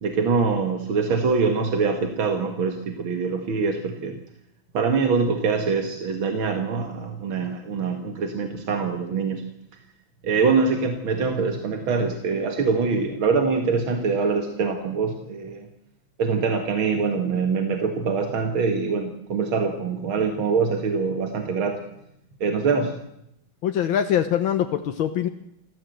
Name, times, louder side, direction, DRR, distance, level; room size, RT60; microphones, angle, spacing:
voice 1, 0.0-4.2 4.7-9.4 10.2-15.7 16.2-21.8 22.4-23.0, right 5 dB, 85° right, 4 dB, 2.6 m, -24 dB
voice 2, 23.6-25.3, left 9 dB, 80° left, 7 dB, 1.8 m, -23 dB
26.5 x 15.0 x 7.9 m, 0.80 s
omnidirectional pair, 2.2 m